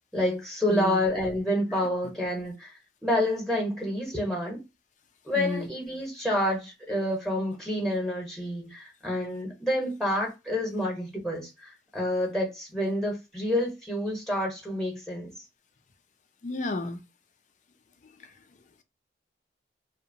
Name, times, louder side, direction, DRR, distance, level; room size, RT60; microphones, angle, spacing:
voice 1, 0.1-4.6 5.3-15.3, left 1 dB, ahead, 0.8 m, -28 dB
voice 2, 5.4-5.7 16.4-17.0, left 2 dB, 45° left, 0.4 m, -31 dB
2.7 x 2.1 x 2.6 m
head